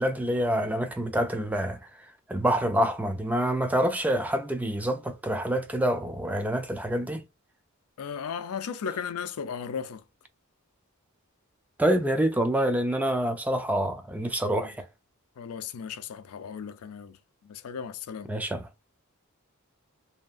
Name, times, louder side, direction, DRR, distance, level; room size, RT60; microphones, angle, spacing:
voice 1, 0.0-1.8 2.3-7.2 11.8-14.9 18.3-18.7, right 1 dB, 5° right, 0.3 m, -26 dB
voice 2, 8.0-10.0 14.5-14.7 15.4-17.2 17.4-18.3, left 6 dB, 75° left, 0.4 m, -36 dB
2.8 x 2.3 x 2.4 m
head